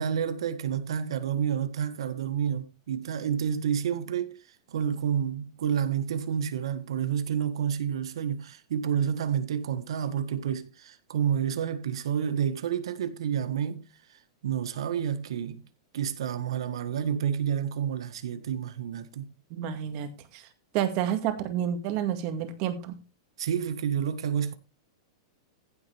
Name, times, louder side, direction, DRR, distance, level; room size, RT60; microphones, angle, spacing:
voice 1, 0.0-4.3 4.7-13.9 14.4-15.6 15.9-19.3 23.4-24.5, right 8 dB, 80° right, 1.7 m, -29 dB
voice 2, 19.5-20.4 20.7-23.0, right 10 dB, 35° right, 2.1 m, -30 dB
15.5 x 7.7 x 3.5 m
supercardioid pair, 165°, 3 cm